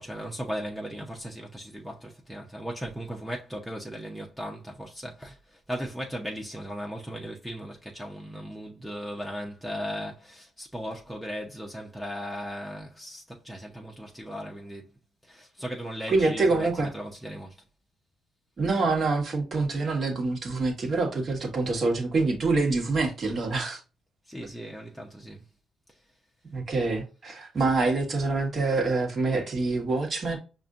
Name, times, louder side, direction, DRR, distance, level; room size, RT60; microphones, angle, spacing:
voice 1, 0.0-14.9 15.2-17.6 24.2-25.4 25.9-26.0, equal, 5° right, 0.8 m, -37 dB
voice 2, 16.1-16.9 18.6-23.8 26.5-30.4, right 3 dB, 45° right, 1.5 m, -26 dB
5.3 x 2.6 x 2.5 m
cardioid pair, 90°, 0 cm